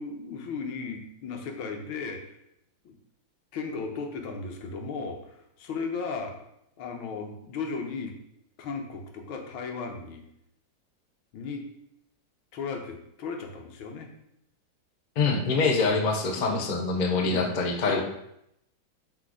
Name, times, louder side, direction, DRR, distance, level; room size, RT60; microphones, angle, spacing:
voice 1, 0.0-2.4 2.9-3.0 3.5-6.4 6.8-8.1 8.6-10.2 11.3-11.6 12.5-14.1 15.7-16.0 16.3-16.8 17.2-17.6 17.9-18.0, left 4 dB, 85° left, 3 dB, 1.8 m, -36 dB
voice 2, 15.2-18.0, left 4 dB, 65° left, 3 dB, 0.4 m, -25 dB
6.2 x 4.3 x 4.8 m, 0.79 s
omnidirectional pair, 2.2 m